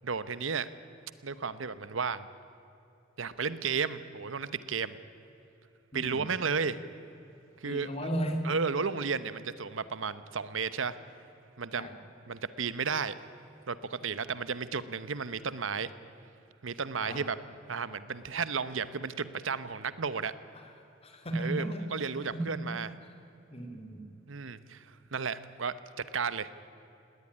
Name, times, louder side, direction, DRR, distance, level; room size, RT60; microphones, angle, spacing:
voice 1, 0.0-0.7 1.2-2.3 3.2-5.0 5.9-6.8 7.6-7.9 8.4-11.0 11.6-11.9 12.3-13.1 13.7-15.9 16.6-17.4 17.7-20.3 21.3-22.9 24.3-24.8 25.1-26.5, right 5 dB, 75° right, 15 dB, 0.9 m, -33 dB
voice 2, 5.9-6.3 7.6-8.5 11.7-12.0 17.0-17.3 20.5-20.7 21.0-22.6 23.0-23.1 23.5-24.1, right 1 dB, 30° left, 5 dB, 2.9 m, -36 dB
19.5 x 18.5 x 10.0 m, 2.8 s
head